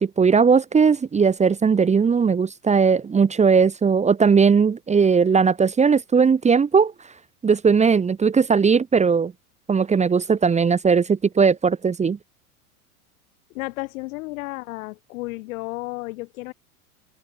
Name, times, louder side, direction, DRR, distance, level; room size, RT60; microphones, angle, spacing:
voice 1, 0.0-6.9 7.4-9.3 9.7-12.2, right 5 dB, 15° right, 1.1 m, -18 dB
voice 2, 13.5-16.5, left 22 dB, 60° left, 3.7 m, -32 dB
hypercardioid pair, 100°, 45 cm